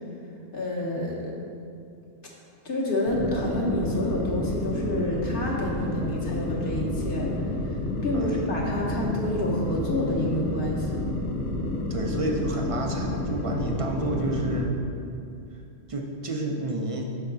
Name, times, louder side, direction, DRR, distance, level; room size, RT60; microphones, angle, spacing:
voice 1, 0.5-1.3 2.6-7.4 7.6-7.8 8.0-11.0, left 1 dB, 45° left, -3 dB, 1.2 m, -29 dB
sound 1, 3.1-14.7, left 1 dB, 75° left, 1.0 m, -30 dB
voice 2, 11.9-14.8 15.9-17.1, right 2 dB, 50° right, 1 dB, 0.4 m, -30 dB
6.8 x 5.7 x 3.8 m, 2.5 s
omnidirectional pair, 1.3 m